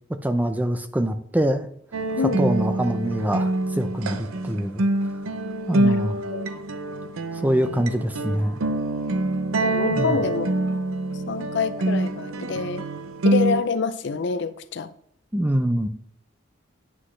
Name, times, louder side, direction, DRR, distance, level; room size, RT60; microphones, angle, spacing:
voice 1, 0.2-1.7 2.4-4.8 5.7-6.2 7.4-8.6 9.9-10.2 15.3-15.9, right 1 dB, 10° right, 8 dB, 0.4 m, -24 dB
sound 1, 1.9-13.6, right 1 dB, 85° right, 0.6 m, -25 dB
voice 2, 5.8-6.5 9.6-10.5 11.3-12.8 13.2-14.9, left 5 dB, 55° left, 12 dB, 0.5 m, -27 dB
9.6 x 6.1 x 3.2 m, 0.66 s
head